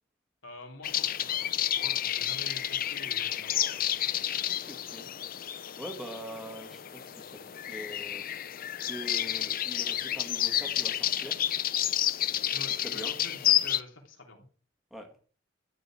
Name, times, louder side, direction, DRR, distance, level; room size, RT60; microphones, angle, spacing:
voice 1, 0.4-4.2 12.5-14.5, left 2 dB, 85° left, 2 dB, 3.2 m, -47 dB
sound 1, 0.8-13.8, left 11 dB, 45° left, 0.5 m, -30 dB
voice 2, 4.6-5.1 5.8-7.3 7.7-8.2 8.9-11.4 12.8-13.1 14.9-15.1, equal, ahead, 3 dB, 2.0 m, -43 dB
12.5 x 5.5 x 8.7 m, 0.41 s
head